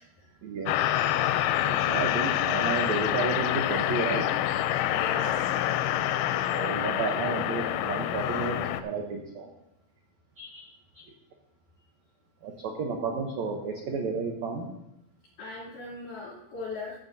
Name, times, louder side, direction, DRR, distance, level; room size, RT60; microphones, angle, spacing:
voice 1, 0.4-4.2 6.5-9.5 10.4-10.6 10.9-11.0 12.4-14.7, right 4 dB, 75° right, 2 dB, 1.6 m, -32 dB
sound 1, 0.7-8.8, left 12 dB, 90° left, 2.5 m, -27 dB
voice 2, 4.9-5.4 5.9-6.0 15.4-17.0, left 3 dB, 60° left, -10 dB, 4.6 m, -38 dB
16.0 x 9.8 x 2.7 m, 0.87 s
omnidirectional pair, 4.4 m